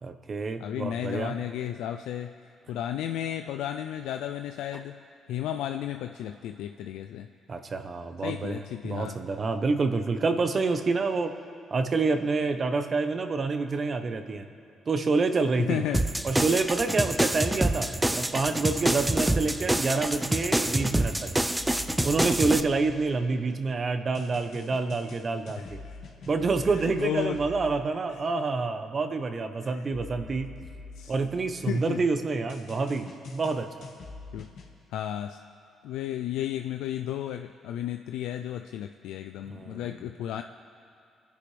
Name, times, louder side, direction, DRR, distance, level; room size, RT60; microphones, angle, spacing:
voice 1, 0.0-1.3 7.5-11.4 11.7-14.5 14.9-15.9 16.2-21.3 22.0-25.8 26.3-30.6 31.1-33.7 39.5-39.9, right 4 dB, 40° right, 8 dB, 0.9 m, -28 dB
voice 2, 0.6-2.3 2.7-5.0 5.3-7.3 8.2-9.1 15.7-16.0 25.8-26.0 26.7-27.4 31.0-31.1 31.7-32.0 34.3-34.5 34.9-35.4 35.8-40.4, left 11 dB, 90° left, 7 dB, 0.4 m, -33 dB
sound 1, 15.9-22.6, right 1 dB, 10° right, 0.5 m, -26 dB
sound 2, 21.6-23.4 24.1-27.9 29.9-31.8 32.5-34.7, left 4 dB, 70° left, 2.0 m, -44 dB
27.5 x 10.0 x 3.4 m, 2.4 s
cardioid pair, 90°, 0 cm